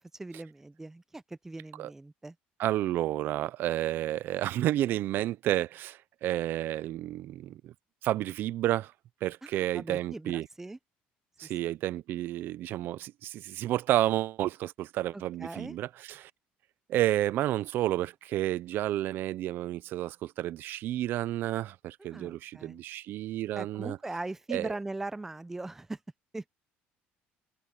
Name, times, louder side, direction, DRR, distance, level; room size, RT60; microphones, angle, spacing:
voice 1, 0.0-2.3 9.4-10.8 11.4-11.5 15.1-15.8 22.0-22.8 23.5-26.0 26.3-26.5, right 2 dB, 10° right, 0.6 m, -40 dB
voice 2, 2.6-7.7 8.0-8.9 9.2-10.5 11.4-16.3 16.9-24.0 24.5-24.7, right 14 dB, 65° right, 0.6 m, -31 dB
cardioid pair, 125°, 4 cm